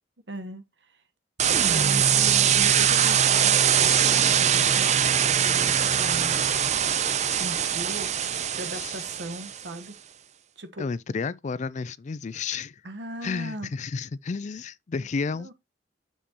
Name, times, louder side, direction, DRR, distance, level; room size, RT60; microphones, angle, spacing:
voice 1, 0.3-1.0 1.6-6.4 7.4-10.0 10.6-10.9 12.8-13.7 15.3-15.5, right 1 dB, 80° right, 1.3 m, -38 dB
sound 1, 1.4-9.6, right 8 dB, 40° right, 0.6 m, -22 dB
voice 2, 10.8-12.8 13.2-15.5, left 4 dB, 45° left, 0.4 m, -32 dB
7.4 x 7.0 x 3.0 m
head